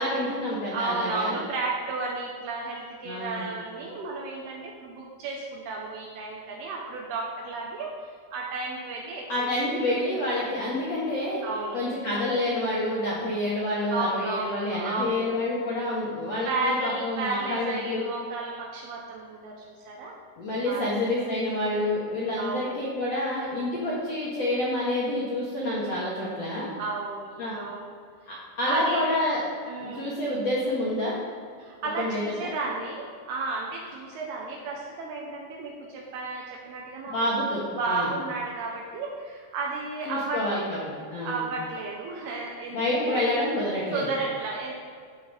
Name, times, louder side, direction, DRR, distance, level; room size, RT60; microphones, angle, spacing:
voice 1, 0.0-1.4 3.0-3.5 9.3-11.4 11.7-18.1 20.4-26.7 27.4-27.6 28.3-29.4 29.8-31.2 32.0-32.5 37.0-38.1 40.0-41.5 42.7-44.1, left 1 dB, 60° left, -7 dB, 1.8 m, -28 dB
voice 2, 0.7-9.9 11.4-11.8 13.9-15.3 16.5-20.2 20.7-20.9 22.4-22.8 25.8-26.0 26.8-27.9 28.3-29.1 29.7-30.1 31.6-37.2 37.8-40.8 41.2-43.2 43.9-44.8, right 3 dB, 75° right, -1 dB, 2.6 m, -33 dB
13.5 x 5.3 x 5.3 m, 2.1 s
omnidirectional pair, 5.3 m